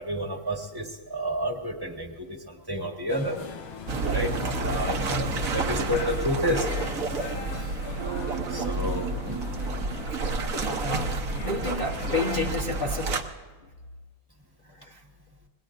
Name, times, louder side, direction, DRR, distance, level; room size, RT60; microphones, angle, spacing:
voice 1, 0.0-3.4 4.0-6.7 8.3-9.4, equal, 15° right, 2 dB, 1.4 m, -30 dB
sound 1, 3.1-12.5, left 5 dB, 85° left, 1.9 m, -40 dB
sound 2, 3.9-13.2, right 2 dB, 50° right, 1.3 m, -30 dB
voice 2, 5.1-5.5 10.6-11.1 11.4-13.1 14.7-15.0, left 3 dB, 35° left, 1 dB, 1.0 m, -31 dB
sound 3, 8.0-11.3 11.5-11.6, right 9 dB, 65° right, 1.0 m, -38 dB
27.0 x 20.0 x 2.6 m, 1.4 s
omnidirectional pair, 2.2 m